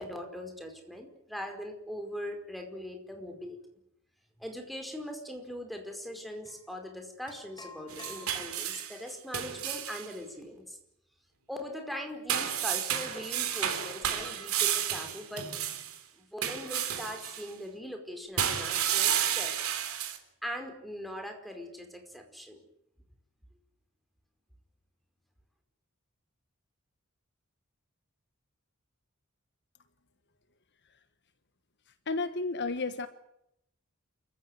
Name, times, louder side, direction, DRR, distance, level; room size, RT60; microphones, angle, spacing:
voice 1, 0.0-3.6 4.4-10.8 11.5-15.5 16.2-19.6 20.4-22.6, equal, ahead, 4 dB, 4.9 m, -41 dB
sound 1, 6.4-6.6 7.3-8.7, left 4 dB, 20° left, 5.7 m, -50 dB
sound 2, 7.9-10.1 12.3-16.0 16.4-17.4 18.4-20.2, right 9 dB, 85° right, 3.6 m, -31 dB
voice 2, 32.1-33.1, left 3 dB, 55° left, 12 dB, 1.3 m, -32 dB
28.5 x 15.0 x 9.7 m, 0.80 s
head